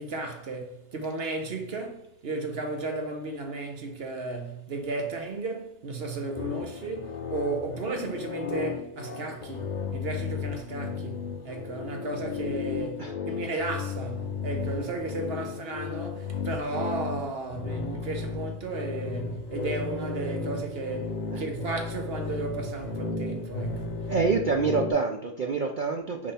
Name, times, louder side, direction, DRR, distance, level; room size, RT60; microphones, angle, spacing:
voice 1, 0.0-24.1, right 3 dB, 45° right, 1.0 m, -34 dB
sound 1, 6.4-24.9, left 5 dB, 75° left, 0.4 m, -34 dB
voice 2, 24.0-26.3, right 4 dB, 80° right, 0.4 m, -27 dB
5.3 x 4.9 x 4.3 m
omnidirectional pair, 1.6 m